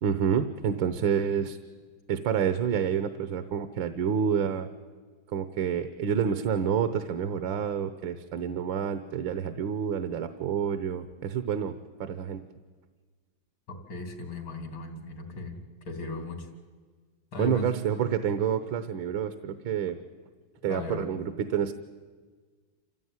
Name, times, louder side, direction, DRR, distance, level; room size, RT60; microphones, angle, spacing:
voice 1, 0.0-1.6 2.1-4.7 5.3-11.7 12.0-12.4 17.4-20.0 20.6-21.7, right 8 dB, 75° right, 10 dB, 1.7 m, -28 dB
voice 2, 13.7-15.6 15.9-16.5 17.3-17.7 20.7-21.1, left 3 dB, 85° left, 5 dB, 4.0 m, -37 dB
27.5 x 15.0 x 9.7 m, 1.5 s
omnidirectional pair, 2.1 m